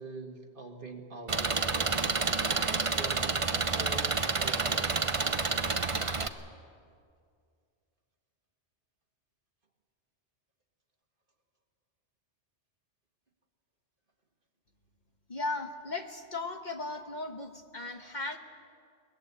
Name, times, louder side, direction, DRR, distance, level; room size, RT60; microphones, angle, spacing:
voice 1, 0.0-3.4 3.7-5.0, right 3 dB, 50° right, 3 dB, 2.1 m, -44 dB
Engine, 1.3-6.3, right 4 dB, 30° right, 0.8 m, -29 dB
voice 2, 15.3-18.4, left 2 dB, 40° left, 5 dB, 1.3 m, -36 dB
22.5 x 20.0 x 8.3 m, 2.2 s
omnidirectional pair, 1.2 m